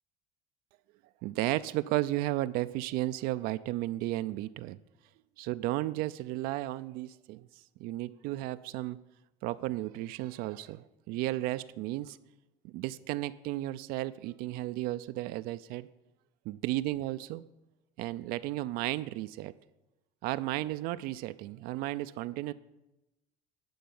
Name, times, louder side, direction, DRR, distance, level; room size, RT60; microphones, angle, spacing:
voice 1, 1.2-4.8 5.4-7.5 7.8-9.0 9.4-12.2 12.6-15.9 16.5-17.4 18.0-19.5 20.2-22.5, right 16 dB, 70° right, 13 dB, 0.4 m, -34 dB
11.5 x 4.7 x 7.0 m, 0.97 s
cardioid pair, 115°, 16 cm